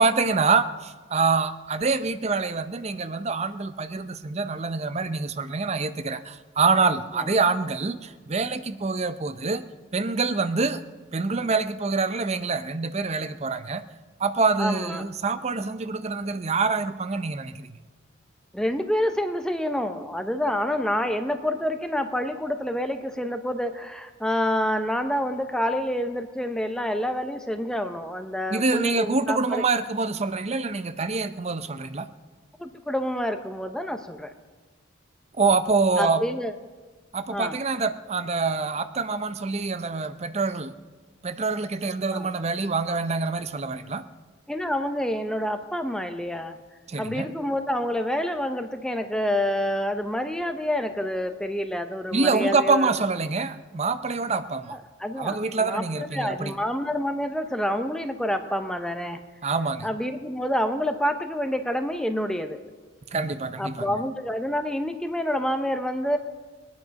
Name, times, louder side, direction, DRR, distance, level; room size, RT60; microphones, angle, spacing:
voice 1, 0.0-9.6 9.9-10.8 11.1-13.8 14.2-17.8 28.5-32.1 35.4-36.2 37.1-40.7 41.2-44.0 46.9-47.3 52.1-54.8 55.2-56.6 59.4-59.9 63.1-64.0, right 4 dB, 35° right, 12 dB, 0.6 m, -25 dB
voice 2, 14.6-15.0 18.5-29.6 32.6-34.3 36.0-36.5 37.3-37.6 42.1-42.3 44.5-46.6 47.0-52.9 54.7-59.2 59.8-62.6 63.6-66.2, equal, 5° left, 7 dB, 0.7 m, -28 dB
22.0 x 9.5 x 5.3 m, 1.4 s
head